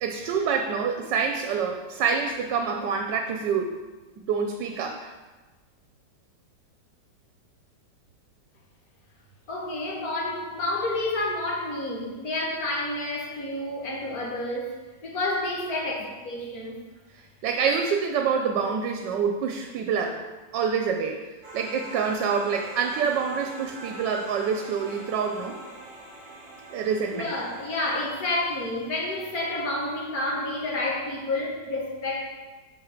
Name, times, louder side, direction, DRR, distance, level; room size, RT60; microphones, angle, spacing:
voice 1, 0.0-3.7 4.3-5.1 17.4-20.2 20.5-25.6 26.7-27.3, right 6 dB, 80° right, 4 dB, 1.3 m, -26 dB
voice 2, 9.5-14.7 15.0-16.8 27.1-32.3, left 2 dB, 55° left, -3 dB, 2.0 m, -29 dB
sound 1, 21.4-30.0, right 1 dB, 30° right, 1.8 m, -44 dB
5.7 x 5.0 x 6.5 m, 1.3 s
omnidirectional pair, 1.9 m